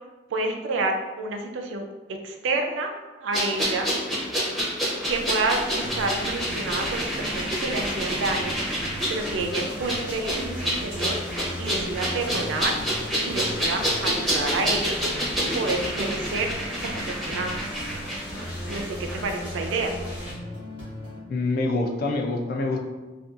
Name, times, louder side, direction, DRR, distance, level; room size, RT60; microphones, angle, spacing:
voice 1, 0.3-2.9 3.2-3.9 5.0-8.6 9.1-11.2 11.6-12.8 13.2-15.1 15.4-16.5 16.8-17.6 18.7-19.9, right 3 dB, 80° right, 4 dB, 0.4 m, -29 dB
sound 1, 3.3-18.8 19.1-19.2, equal, ahead, 0.6 m, -28 dB
sound 2, 5.1-20.3, equal, 80° left, 1.0 m, -40 dB
sound 3, 5.6-21.2, equal, 30° left, 1.0 m, -38 dB
voice 2, 21.3-22.8, left 2 dB, 50° left, 1 dB, 0.3 m, -25 dB
2.6 x 2.2 x 2.4 m, 1.2 s
head